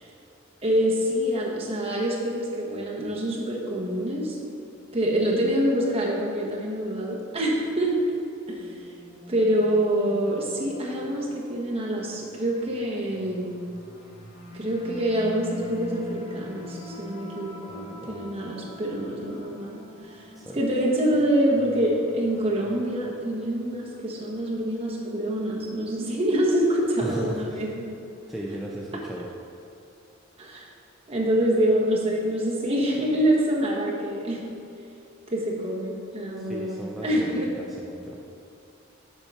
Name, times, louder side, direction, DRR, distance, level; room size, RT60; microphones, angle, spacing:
voice 1, 0.6-4.4 4.9-8.0 8.5-8.7 9.3-13.5 14.5-17.6 18.1-19.8 20.1-20.2 20.5-27.9 30.4-30.6 31.1-34.4 35.3-37.5, right 1 dB, 30° right, -4 dB, 1.3 m, -26 dB
sound 1, 8.6-23.9, equal, 35° left, 1.2 m, -44 dB
voice 2, 17.7-18.2 20.3-20.6 27.0-27.6 28.3-29.3 36.4-38.2, right 1 dB, ahead, -4 dB, 0.5 m, -36 dB
7.2 x 4.7 x 5.5 m, 2.6 s
head